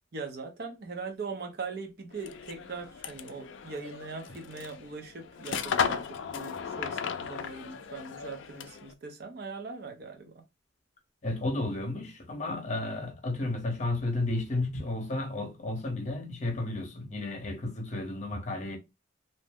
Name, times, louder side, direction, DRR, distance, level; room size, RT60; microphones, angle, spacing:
voice 1, 0.1-10.3, right 4 dB, 55° right, 0.6 m, -40 dB
sound 1, 2.1-8.9, left 7 dB, 70° left, 0.3 m, -36 dB
voice 2, 11.2-18.8, left 2 dB, 35° left, 0.8 m, -32 dB
2.7 x 2.0 x 3.4 m
head